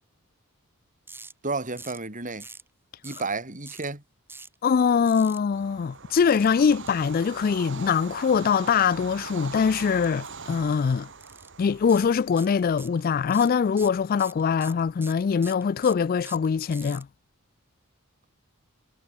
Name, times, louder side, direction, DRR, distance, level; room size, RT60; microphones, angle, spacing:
sound 1, 1.1-1.3 1.8-2.1 2.4-2.7 3.0-3.3 3.6-3.9 4.3-4.5 5.1-5.4 6.3-6.9 10.0-10.3 10.6-10.7 11.2-11.5 11.9-12.0 12.4-13.0 13.3-17.0, right 3 dB, 10° right, 6.2 m, -44 dB
voice 1, 1.4-2.5 3.0-4.0, right 3 dB, 35° right, 4.2 m, -31 dB
voice 2, 4.6-11.1 11.6-17.1, left 6 dB, 45° left, 0.3 m, -23 dB
Bird vocalization bird call bird song / Train, 5.5-16.7, right 4 dB, 60° right, 3.2 m, -43 dB
head